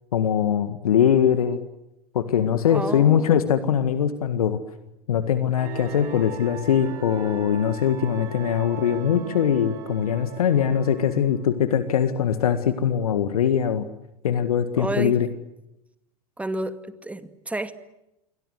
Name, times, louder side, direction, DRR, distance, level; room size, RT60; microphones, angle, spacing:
voice 1, 0.1-1.6 2.1-4.6 5.1-13.9 14.2-15.3, left 8 dB, 70° left, 11 dB, 1.9 m, -22 dB
voice 2, 2.7-3.4 14.8-15.1 16.4-17.7, right 2 dB, 5° right, 11 dB, 2.3 m, -30 dB
sound 1, 5.6-11.8, right 8 dB, 45° right, 6.2 m, -39 dB
28.5 x 23.5 x 8.1 m, 0.89 s
figure-of-eight pair, 85°, 20 cm